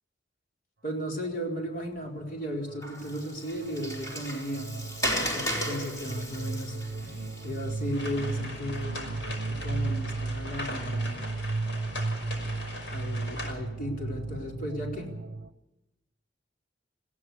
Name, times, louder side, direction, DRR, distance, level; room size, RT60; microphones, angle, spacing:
voice 1, 0.8-4.8 5.1-6.8 7.0-11.3 12.9-15.1, equal, 50° left, 0 dB, 4.3 m, -35 dB
sound 1, 2.2-2.4 2.7-15.5, right 3 dB, 55° right, 0.8 m, -35 dB
Water, 2.8-8.2, equal, 20° left, 4.2 m, -35 dB
sound 2, 7.9-13.5, left 2 dB, 75° left, 5.6 m, -40 dB
20.0 x 16.0 x 8.2 m, 0.98 s
head